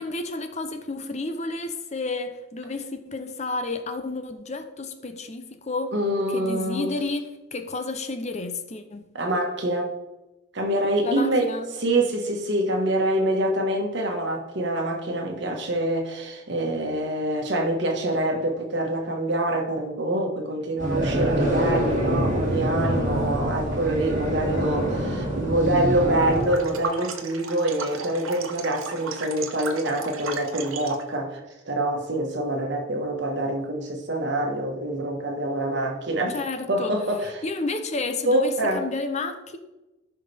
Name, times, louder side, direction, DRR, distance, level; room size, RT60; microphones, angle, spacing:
voice 1, 0.0-5.9 6.3-9.1 11.0-11.7 36.3-36.9 37.4-39.6, left 3 dB, 35° left, 0.7 m, -31 dB
voice 2, 5.9-6.9 9.1-9.9 10.5-36.4 36.7-37.4 38.2-38.8, right 1 dB, 60° right, 1.5 m, -25 dB
sound 1, 20.8-26.5, right 1 dB, 40° right, 2.4 m, -25 dB
sound 2, 26.4-31.1, right 5 dB, 85° right, 1.0 m, -35 dB
14.0 x 5.7 x 3.5 m
head